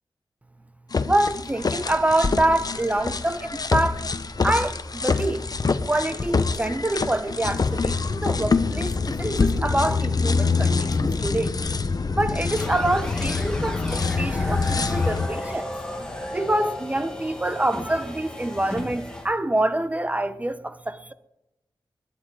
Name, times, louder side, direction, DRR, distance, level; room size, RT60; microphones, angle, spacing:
sound 1, 0.9-15.3, left 4 dB, 50° left, 0.9 m, -25 dB
voice 1, 1.0-4.0 4.4-11.5 12.2-15.7 16.3-21.1, right 1 dB, 15° right, 1.0 m, -26 dB
sound 2, 12.2-14.3 14.6-16.7, left 4 dB, 70° left, 1.9 m, -45 dB
sound 3, 12.6-19.3, left 1 dB, 10° left, 2.8 m, -34 dB
20.5 x 11.0 x 4.9 m
wide cardioid pair, 95°, 8 cm